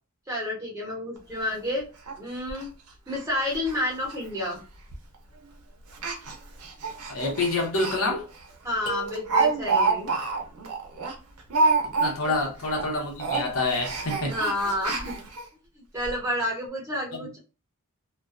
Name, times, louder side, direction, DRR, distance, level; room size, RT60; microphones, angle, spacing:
voice 1, 0.3-1.8 2.2-2.7 3.1-4.6 8.6-10.1 14.3-15.3 15.8-17.4, left 1 dB, 15° right, 0.9 m, -30 dB
Speech, 1.2-1.3 1.6-1.7 2.1-2.2 2.5-2.6 3.1-3.2 3.5-3.8 4.0-4.1 4.9-5.1 5.9-8.0 8.3-8.5 8.8-12.4 12.6-12.9 13.2-15.4 16.0-16.1 16.4-16.5, right 4 dB, 85° right, 0.7 m, -27 dB
voice 2, 7.1-8.3 12.0-14.4 17.2-17.3, left 2 dB, 75° left, 1.0 m, -27 dB
sound 1, 8.9-10.0, right 3 dB, 40° left, 0.7 m, -39 dB
2.4 x 2.2 x 2.4 m
head